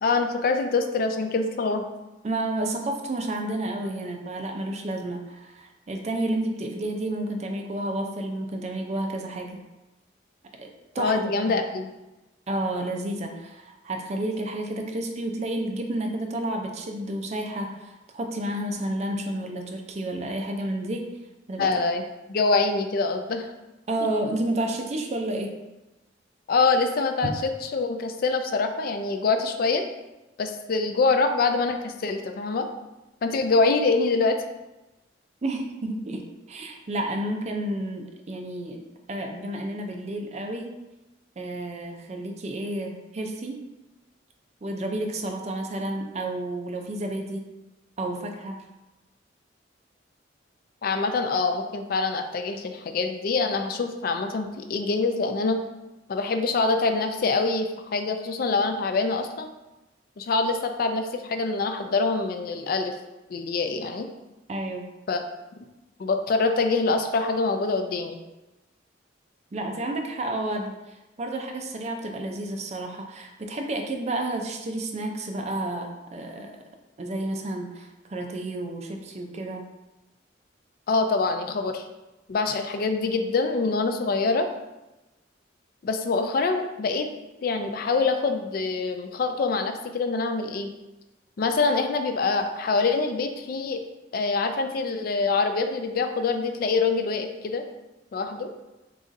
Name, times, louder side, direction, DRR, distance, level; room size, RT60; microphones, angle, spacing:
voice 1, 0.0-1.9 11.0-11.9 21.6-22.0 22.3-23.5 26.5-29.9 30.4-32.7 33.2-34.4 50.8-55.6 56.1-59.5 60.2-63.0 63.3-64.1 65.1-65.2 66.0-68.2 80.9-81.8 82.3-84.5 85.8-87.1 87.4-90.7 91.4-93.8 94.1-97.6 98.1-98.5, left 3 dB, 50° left, 7 dB, 0.4 m, -25 dB
voice 2, 2.2-9.6 10.6-10.7 10.9-11.6 12.5-21.1 21.5-21.8 23.9-25.6 27.2-27.3 35.4-36.2 36.5-38.8 39.1-40.7 41.4-43.6 44.6-47.4 48.0-48.6 64.5-64.9 69.5-76.6 77.0-79.6, right 1 dB, 35° right, 3 dB, 0.4 m, -31 dB
4.0 x 3.9 x 2.5 m, 1.0 s
head